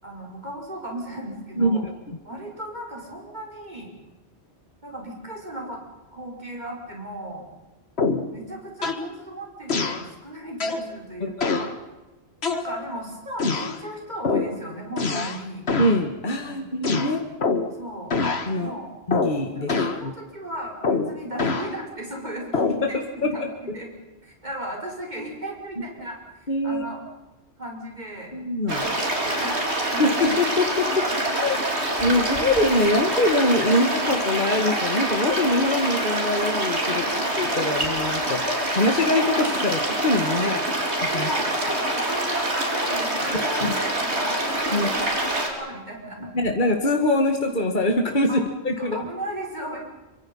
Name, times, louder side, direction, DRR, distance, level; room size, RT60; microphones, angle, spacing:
voice 1, 0.0-1.8 2.2-3.9 4.8-5.8 6.1-7.4 8.3-11.7 12.5-15.7 16.4-16.7 17.7-18.2 18.5-18.9 19.6-23.5 23.7-23.9 24.2-27.0 27.6-28.3 28.7-29.6 29.9-30.0 36.9-37.2 41.0-46.3 48.3-48.4 48.8-49.8, right 1 dB, 40° right, 0 dB, 6.4 m, -36 dB
sound 1, 8.0-8.3 8.8-9.1 9.7-10.1 10.6-10.9 11.4-11.7 12.4-13.0 13.4-13.8 14.2-14.6 15.0-15.4 15.7-16.0 16.8-17.8 18.1-18.5 19.1-19.4 19.7-20.0 20.8-21.7 22.5-22.8, left 4 dB, 70° left, 1.9 m, -25 dB
voice 2, 11.2-11.6 15.8-17.2 18.5-18.7 19.1-19.7 20.0-20.1 22.7-22.8 23.2-23.5 26.5-26.8 28.3-28.8 30.0-31.0 31.3-31.6 32.0-41.3 43.6-43.7 44.7-44.9 46.2-49.0, left 1 dB, 45° left, 4 dB, 2.1 m, -23 dB
sound 2, 28.7-45.5, right 1 dB, 80° right, 4.6 m, -25 dB
27.5 x 24.5 x 5.6 m, 1.1 s
omnidirectional pair, 1.1 m